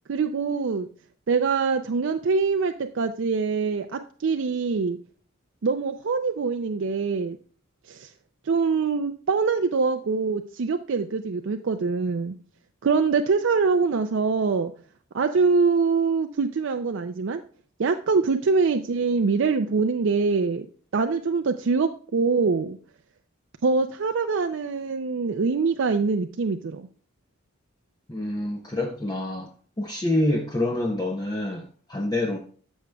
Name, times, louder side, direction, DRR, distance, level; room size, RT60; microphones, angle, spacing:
voice 1, 0.1-0.9 1.3-5.0 5.6-7.4 7.9-8.1 8.5-12.3 12.8-14.7 15.1-17.4 17.8-20.7 20.9-22.8 23.6-26.9, right 4 dB, 60° right, 6 dB, 0.4 m, -24 dB
voice 2, 28.1-29.5 29.8-32.4, left 1 dB, 20° left, 1 dB, 0.7 m, -27 dB
13.0 x 6.4 x 2.3 m, 0.43 s
head